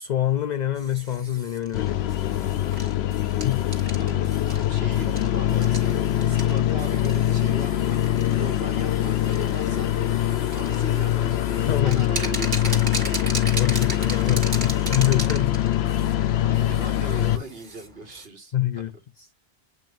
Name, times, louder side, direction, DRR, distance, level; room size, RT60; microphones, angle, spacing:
voice 1, 0.0-2.6 3.3-3.7 11.7-12.0 13.6-15.8 18.5-19.3, left 12 dB, 55° left, 0.6 m, -26 dB
sound 1, 0.7-18.3, right 2 dB, 50° right, 2.1 m, -38 dB
sound 2, 1.7-17.4, left 12 dB, 85° left, 0.9 m, -23 dB
voice 2, 4.0-8.0 8.3-9.9 10.5-13.3 15.2-15.5 16.4-18.8, right 3 dB, 75° right, 1.9 m, -39 dB
8.9 x 5.4 x 2.6 m
omnidirectional pair, 1.0 m